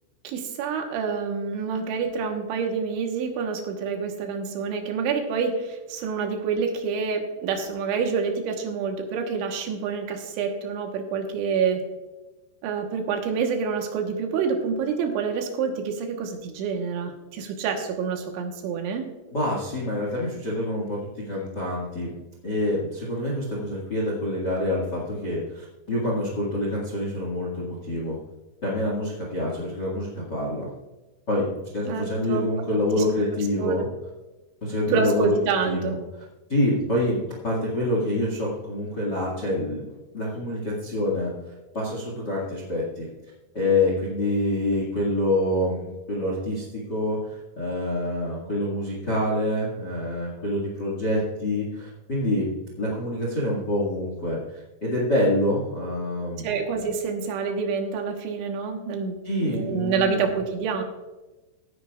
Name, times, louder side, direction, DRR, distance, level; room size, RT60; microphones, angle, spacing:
voice 1, 0.3-11.8 12.6-19.1 31.9-32.5 32.9-33.0 33.6-33.8 34.9-36.0 56.4-60.8, right 5 dB, 75° right, 3 dB, 3.5 m, -27 dB
voice 2, 19.3-22.1 22.4-28.2 28.6-30.7 31.3-31.5 31.7-33.9 34.6-35.4 35.6-36.0 36.5-39.8 40.1-41.3 41.7-43.1 43.5-52.5 52.8-56.5 59.2-60.2, left 1 dB, 45° left, -2 dB, 1.3 m, -26 dB
17.0 x 10.0 x 2.4 m, 1.1 s
omnidirectional pair, 5.5 m